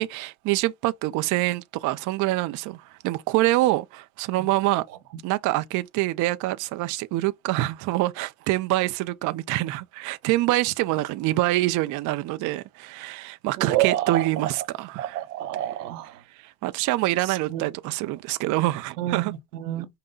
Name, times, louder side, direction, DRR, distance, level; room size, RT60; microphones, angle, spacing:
voice 1, 0.0-4.8 5.2-15.2 16.3-19.3, right 17 dB, 40° right, 0.5 m, -25 dB
voice 2, 13.6-14.3 15.0-16.2 17.5-17.6 19.0-19.9, right 13 dB, 75° right, 0.9 m, -28 dB
5.4 x 2.2 x 3.8 m
hypercardioid pair, 80°, 47 cm